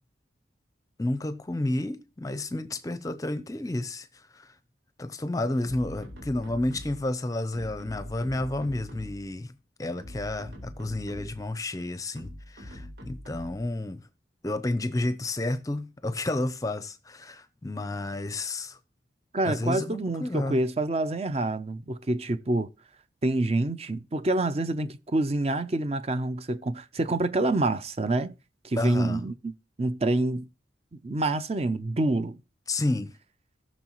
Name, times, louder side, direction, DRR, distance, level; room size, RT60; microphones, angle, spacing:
voice 1, 1.0-4.5 5.0-9.5 9.8-14.0 14.4-18.8 19.4-20.6 28.8-29.2 32.7-33.1, left 2 dB, 20° left, 0.5 m, -31 dB
sound 1, 5.6-7.1 7.5-9.3 9.8-11.5 12.2-13.7, equal, 65° right, 3.7 m, -43 dB
voice 2, 19.3-22.7 23.2-28.3 28.6-29.5 29.8-30.5 31.0-32.4, right 2 dB, 35° right, 0.5 m, -27 dB
17.5 x 6.3 x 3.0 m
head